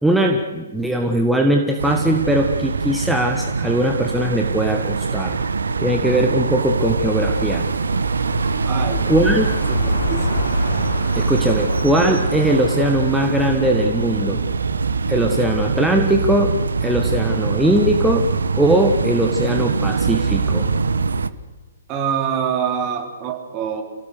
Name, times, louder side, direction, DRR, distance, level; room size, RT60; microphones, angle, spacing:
voice 1, 0.0-5.4 5.8-7.6 9.1-9.5 11.1-14.4 15.1-16.5 16.8-18.2 18.6-20.7, right 1 dB, ahead, 2 dB, 1.5 m, -20 dB
sound 1, 1.8-21.3, right 4 dB, 70° right, 1.1 m, -23 dB
sound 2, 6.2-15.2, left 3 dB, 60° left, 6.4 m, -30 dB
voice 2, 8.7-9.4 9.7-10.4 21.9-23.8, right 7 dB, 25° right, 4 dB, 3.6 m, -25 dB
29.0 x 17.5 x 6.6 m, 1.3 s
figure-of-eight pair, 125°, 0 cm